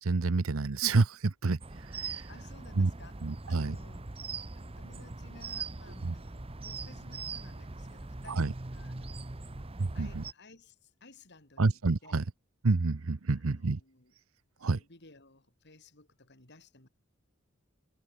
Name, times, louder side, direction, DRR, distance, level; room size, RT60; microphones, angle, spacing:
voice 1, 0.0-2.3 2.8-2.9 3.2-3.8 6.0-6.1 8.3-8.5 9.8-10.2 11.6-12.2 12.6-13.8 14.6-14.8, right 3 dB, 80° right, 0.8 m, -28 dB
sound 1, 1.6-10.3, right 3 dB, 25° right, 1.0 m, -41 dB
voice 2, 2.3-3.2 3.5-4.1 4.5-9.3 9.9-12.2 13.3-14.1 14.6-16.9, left 2 dB, 55° left, 4.7 m, -56 dB
head